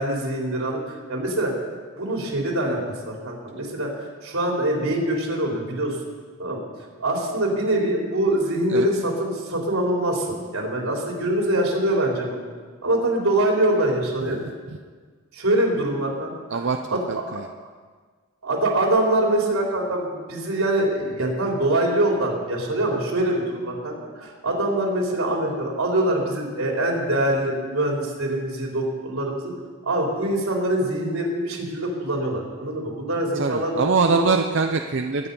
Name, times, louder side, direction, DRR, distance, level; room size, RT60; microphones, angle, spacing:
voice 1, 0.0-1.5 2.0-2.8 3.1-3.9 4.2-6.0 6.4-6.6 7.0-12.4 12.8-14.4 15.3-16.6 16.9-17.0 17.3-17.4 18.4-29.5 29.8-34.3, right 1 dB, 85° right, -1 dB, 3.8 m, -24 dB
voice 2, 16.5-17.5 33.3-35.3, right 4 dB, 60° right, 5 dB, 0.6 m, -23 dB
22.0 x 9.5 x 5.5 m, 1.5 s
head